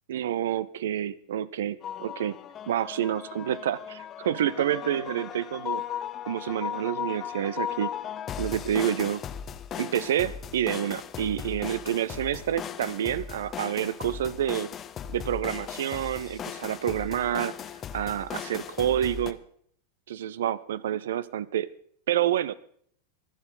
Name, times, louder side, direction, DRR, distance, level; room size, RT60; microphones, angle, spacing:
voice 1, 0.1-2.4 2.7-5.8 6.3-7.9 8.4-9.2 9.8-14.7 15.1-17.5 17.9-19.4 20.1-21.7 22.1-22.5, right 11 dB, 60° right, 19 dB, 0.6 m, -28 dB
sound 1, 1.8-19.3, left 9 dB, 25° left, 0.9 m, -37 dB
25.0 x 9.0 x 4.0 m, 0.62 s
figure-of-eight pair, 90°, 0 cm